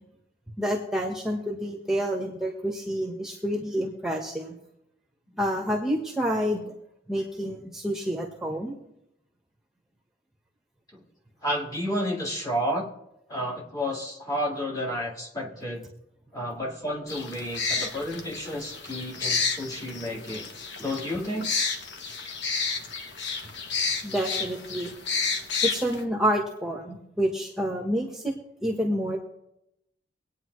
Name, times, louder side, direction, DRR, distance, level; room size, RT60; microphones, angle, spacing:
voice 1, 0.6-4.5 5.4-6.7 7.1-8.7 24.0-24.9 25.6-28.3 28.6-29.2, equal, 5° right, -1 dB, 1.4 m, -28 dB
voice 2, 11.4-12.9 13.3-15.9 16.3-20.5 20.8-21.5, equal, 20° left, -1 dB, 2.1 m, -31 dB
sound 1, 17.1-26.0, left 4 dB, 65° left, 1.2 m, -31 dB
24.0 x 9.1 x 3.2 m, 0.84 s
head